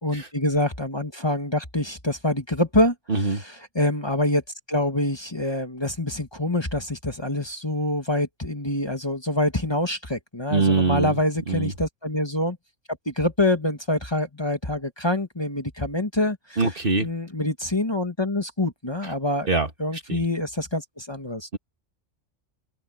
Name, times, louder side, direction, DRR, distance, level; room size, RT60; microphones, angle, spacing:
voice 1, 0.0-2.9 3.3-4.4 4.7-12.6 13.1-16.6 17.0-19.5 19.8-21.5, left 1 dB, 20° left, 1.8 m, -25 dB
voice 2, 3.1-3.4 10.5-11.2 11.5-11.7 16.6-17.1 19.0-19.1 19.4-20.2 21.5-21.6, right 3 dB, 45° right, 1.8 m, -24 dB
open air
omnidirectional pair, 1.3 m